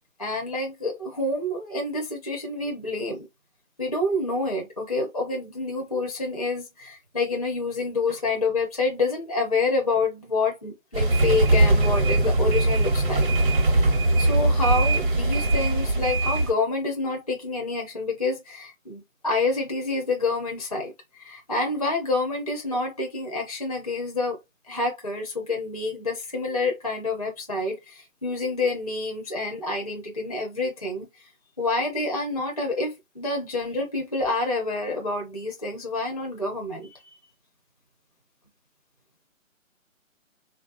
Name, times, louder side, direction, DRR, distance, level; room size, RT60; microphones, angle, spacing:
voice 1, 0.2-3.3 3.8-13.3 14.2-20.9 21.2-24.4 24.7-31.3 31.6-37.0, left 3 dB, 30° left, 0.4 m, -28 dB
sound 1, 10.9-16.5, right 2 dB, 40° right, 0.7 m, -21 dB
3.2 x 2.3 x 2.4 m
figure-of-eight pair, 155°, 41 cm